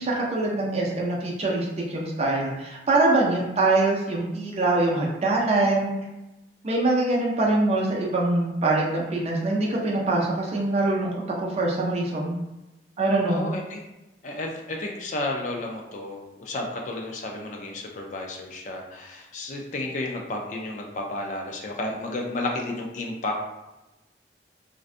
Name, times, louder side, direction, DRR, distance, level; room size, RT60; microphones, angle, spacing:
voice 1, 0.0-5.9 6.6-12.4 13.0-13.4, right 2 dB, 35° right, -2 dB, 0.5 m, -24 dB
voice 2, 13.3-13.8 14.2-23.6, left 2 dB, 45° left, 1 dB, 0.4 m, -32 dB
2.5 x 2.2 x 2.5 m, 0.99 s
head